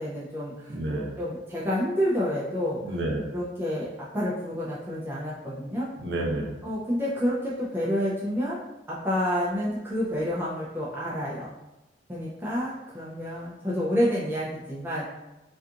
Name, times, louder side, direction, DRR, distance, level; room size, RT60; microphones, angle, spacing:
voice 1, 0.0-0.7 1.2-2.8 3.3-5.9 6.6-8.6 8.9-11.5 12.1-15.0, equal, 10° right, -7 dB, 0.4 m, -29 dB
voice 2, 0.7-1.2 2.8-3.2 6.0-6.5, right 1 dB, 70° right, -1 dB, 0.6 m, -29 dB
2.7 x 2.4 x 2.4 m, 0.98 s
head